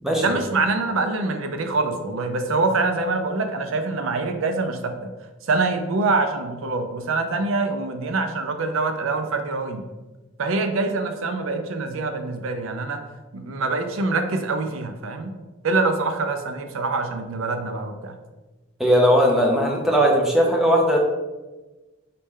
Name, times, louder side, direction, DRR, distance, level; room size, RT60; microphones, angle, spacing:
voice 1, 0.2-4.9 5.5-9.8 10.4-13.0 13.3-15.3 15.6-18.1, right 3 dB, 75° right, 6 dB, 0.5 m, -25 dB
voice 2, 18.8-21.0, equal, ahead, -1 dB, 0.6 m, -18 dB
4.1 x 3.1 x 3.6 m, 1.2 s
head